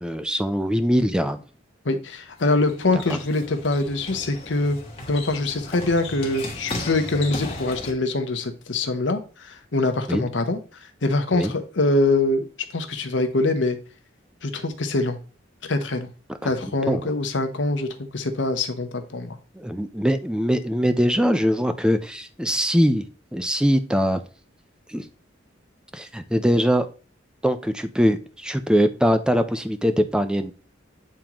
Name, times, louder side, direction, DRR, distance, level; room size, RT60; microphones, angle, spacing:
voice 1, 0.0-1.4 3.1-3.2 10.1-10.3 11.3-11.5 16.4-16.5 16.9-17.1 19.5-24.2 24.9-25.0 25.9-26.9 27.4-30.5, equal, 5° right, 9 dB, 0.5 m, -22 dB
voice 2, 1.8-4.8 5.1-10.6 11.0-12.5 12.7-13.8 14.4-15.2 15.6-16.1 16.4-19.4, left 2 dB, 70° left, 7 dB, 0.9 m, -24 dB
sound 1, 2.3-7.9, left 2 dB, 30° left, 1.4 m, -36 dB
8.7 x 3.7 x 3.0 m, 0.36 s
head